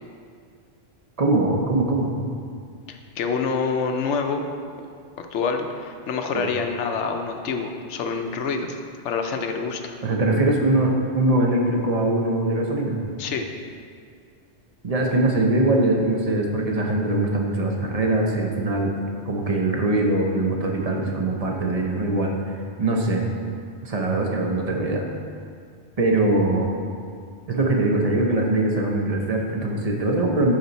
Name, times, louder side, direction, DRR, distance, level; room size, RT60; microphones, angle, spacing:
voice 1, 1.2-2.1 6.3-6.5 10.0-13.0 14.8-18.9 19.3-22.3 22.8-23.2 23.8-25.0 26.0-26.7 27.5-30.6, right 2 dB, 35° right, 0 dB, 0.8 m, -22 dB
voice 2, 2.9-4.4 4.8-4.9 5.2-8.8 9.0-10.0 13.2-13.5, left 5 dB, 70° left, 5 dB, 0.9 m, -27 dB
10.5 x 4.4 x 4.0 m, 2.2 s
omnidirectional pair, 1.3 m